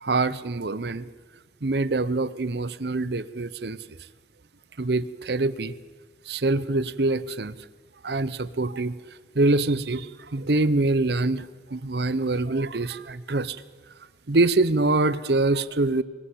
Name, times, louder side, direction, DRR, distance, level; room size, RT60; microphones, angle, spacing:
voice 1, 0.0-1.1 1.6-3.8 4.8-5.7 6.3-7.6 8.0-9.0 9.3-13.6 14.3-16.0, right 2 dB, 60° right, 16 dB, 0.8 m, -24 dB
24.0 x 18.5 x 8.5 m, 1.4 s
head